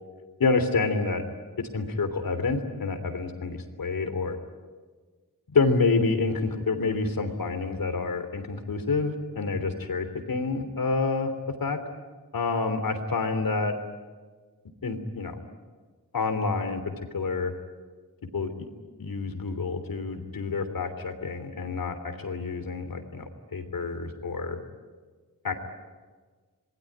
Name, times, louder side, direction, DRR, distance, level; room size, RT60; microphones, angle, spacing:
voice 1, 0.4-1.2 1.7-4.4 5.5-11.3 11.6-11.8 12.3-13.7 14.8-15.3 16.1-16.8 17.1-17.5 18.3-18.7 19.0-24.6 25.4-25.5, left 4 dB, 75° left, 8 dB, 3.2 m, -28 dB
27.0 x 21.0 x 9.9 m, 1.4 s
wide cardioid pair, 125°, 35 cm